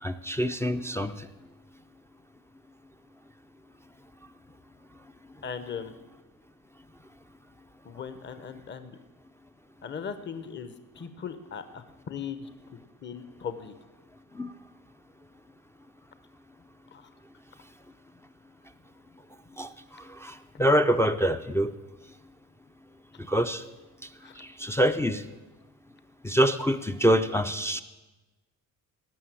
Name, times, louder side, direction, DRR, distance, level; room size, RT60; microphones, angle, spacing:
voice 1, 0.0-1.3 14.3-14.5 19.6-21.7 23.3-23.6 24.4-25.2 26.2-27.8, equal, 10° left, 6 dB, 0.4 m, -25 dB
voice 2, 5.4-5.9 7.8-9.0 9.8-12.5 13.0-13.7 16.9-17.1 24.2-24.4, left 7 dB, 30° left, 11 dB, 0.9 m, -38 dB
17.5 x 6.7 x 9.1 m, 1.1 s
cardioid pair, 165°, 34 cm